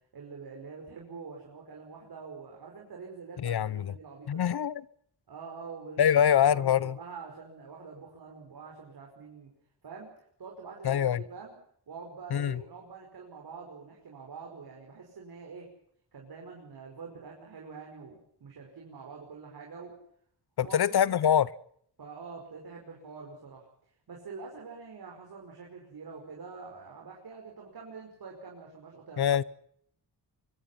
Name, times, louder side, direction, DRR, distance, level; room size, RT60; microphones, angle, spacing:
voice 1, 0.1-4.5 5.3-6.2 6.4-9.5 9.8-11.5 11.9-15.7 16.1-19.9 20.6-21.2 22.0-23.7 24.1-29.4, right 5 dB, 60° right, 5.4 m, -45 dB
voice 2, 3.4-3.9 4.3-4.8 6.0-7.0 10.8-11.2 12.3-12.6 20.6-21.5 29.2-29.4, left 9 dB, 65° left, 0.9 m, -24 dB
25.0 x 24.5 x 5.8 m
wide cardioid pair, 170°, 41 cm